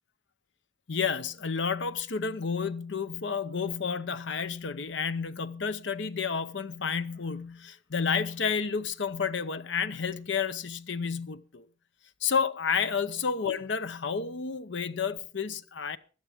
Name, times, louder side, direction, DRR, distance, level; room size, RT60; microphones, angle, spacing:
voice 1, 0.9-11.7 12.2-16.0, left 6 dB, 70° left, 0.7 m, -31 dB
16.0 x 11.5 x 3.5 m
head